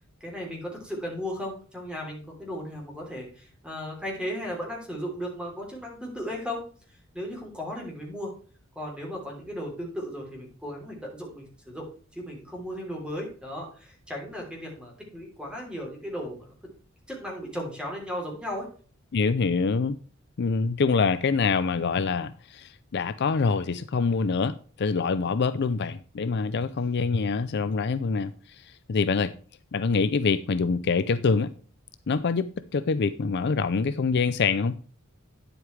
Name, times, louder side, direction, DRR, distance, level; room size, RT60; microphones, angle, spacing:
voice 1, 0.2-6.6 7.1-8.3 8.7-16.5 17.1-18.7, equal, 5° right, 3.1 m, -36 dB
voice 2, 19.1-20.0 20.4-29.3 29.7-31.5 32.1-32.5 32.7-34.8, left 4 dB, 55° left, 0.5 m, -25 dB
9.8 x 7.9 x 3.2 m
head